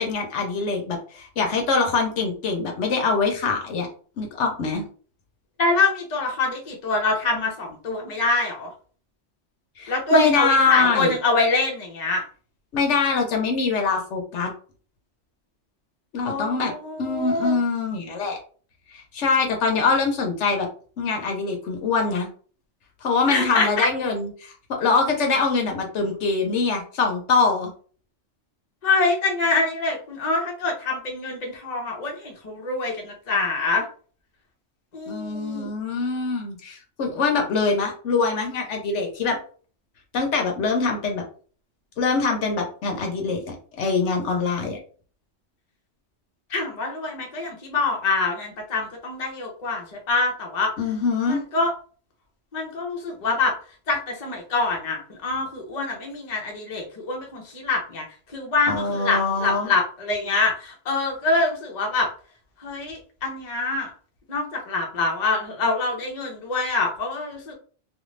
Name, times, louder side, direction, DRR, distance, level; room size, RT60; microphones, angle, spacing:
voice 1, 0.0-3.9 4.2-4.8 9.8-11.1 12.7-14.5 16.1-16.7 17.0-18.4 18.9-20.7 21.0-22.3 23.0-24.5 24.8-27.7 35.1-39.4 40.1-41.2 42.0-44.8 50.8-51.4 58.7-59.7, left 4 dB, 75° left, 2 dB, 1.0 m, -23 dB
voice 2, 5.6-8.7 9.9-12.2 16.2-17.5 23.3-23.9 28.8-33.9 34.9-35.7 46.5-50.7 51.2-51.7 52.5-53.5 53.9-58.1 58.3-62.1 62.6-63.9 64.3-67.5, left 3 dB, 40° left, 0 dB, 0.8 m, -25 dB
2.5 x 2.4 x 3.1 m, 0.42 s
omnidirectional pair, 1.2 m